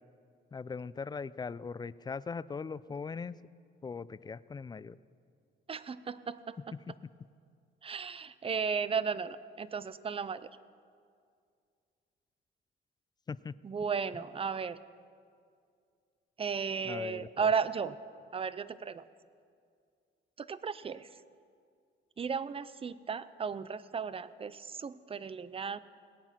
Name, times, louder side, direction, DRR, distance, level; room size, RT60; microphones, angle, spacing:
voice 1, 0.5-3.4 3.8-5.0 6.9-7.0 13.3-13.5 16.8-17.5, left 5 dB, 20° left, 18 dB, 0.3 m, -40 dB
voice 2, 5.7-6.6 7.8-10.5 13.6-14.8 16.4-18.0 18.3-19.1 20.4-21.1 22.2-25.8, right 6 dB, 30° right, 16 dB, 0.5 m, -35 dB
18.5 x 8.9 x 5.8 m, 2.2 s
cardioid pair, 90°, 20 cm